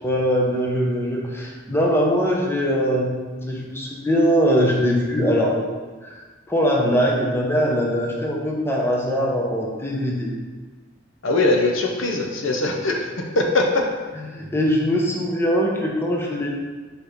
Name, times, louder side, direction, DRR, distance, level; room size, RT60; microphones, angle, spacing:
voice 1, 0.0-5.7 6.0-10.3 14.2-16.5, equal, 10° left, -2 dB, 0.9 m, -22 dB
voice 2, 11.2-13.1 13.3-13.9, left 2 dB, 70° left, 1 dB, 0.8 m, -21 dB
4.8 x 4.8 x 5.1 m, 1.3 s
head